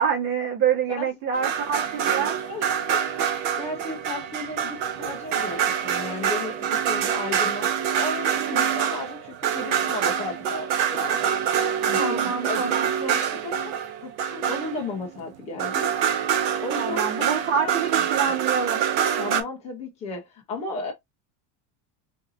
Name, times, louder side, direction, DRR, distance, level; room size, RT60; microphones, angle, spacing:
voice 1, 0.0-2.4 12.0-12.9 16.8-18.8, right 7 dB, 70° right, 1.9 m, -26 dB
sound 1, 1.3-15.2 15.6-19.4, right 8 dB, 85° right, 0.9 m, -26 dB
voice 2, 2.4-11.4 11.9-12.7 13.0-13.7 14.0-15.9 16.6-18.4 19.2-20.9, left 3 dB, 15° left, 0.4 m, -35 dB
3.9 x 2.7 x 2.3 m
cardioid pair, 175°, 49 cm